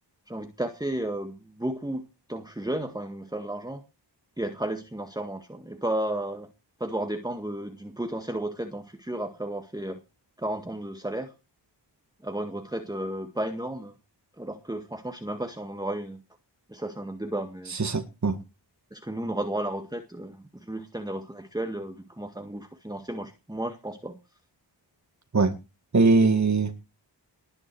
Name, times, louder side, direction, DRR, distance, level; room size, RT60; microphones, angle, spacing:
voice 1, 0.3-3.8 4.4-6.5 6.8-10.0 10.4-11.3 12.2-14.0 14.4-16.2 16.7-17.8 18.9-24.2, right 1 dB, 10° right, 1.7 m, -33 dB
voice 2, 17.7-18.4 25.3-25.5 25.9-26.7, right 3 dB, 40° right, 1.9 m, -21 dB
19.5 x 9.8 x 4.6 m
wide cardioid pair, 110°, 44 cm